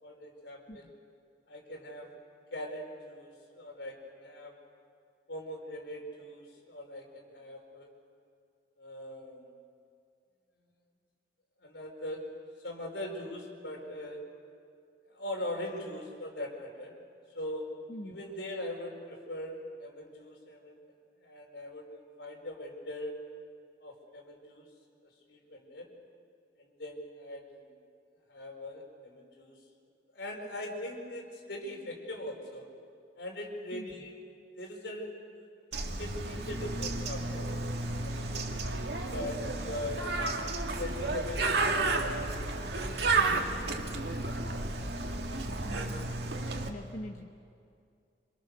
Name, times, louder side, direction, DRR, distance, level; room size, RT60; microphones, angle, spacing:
voice 1, 0.0-0.9 1.5-2.1 2.5-4.6 5.3-7.9 8.8-9.5 11.6-12.3 12.6-14.2 15.1-16.9 17.3-17.7 18.0-20.8 21.2-23.2 23.8-24.7 25.3-25.9 26.6-27.7 28.3-29.6 30.1-32.7 33.2-34.2 34.6-35.6 36.0-37.6 38.0-38.5 39.1-40.1 40.7-42.1 42.6-44.5, left 1 dB, 80° left, 1 dB, 4.9 m, -41 dB
Bird, 35.7-46.7, right 3 dB, 70° right, 2.1 m, -32 dB
voice 2, 45.6-46.2 46.7-47.2, left 1 dB, 45° left, 2 dB, 1.2 m, -43 dB
27.0 x 26.5 x 6.7 m, 2.4 s
head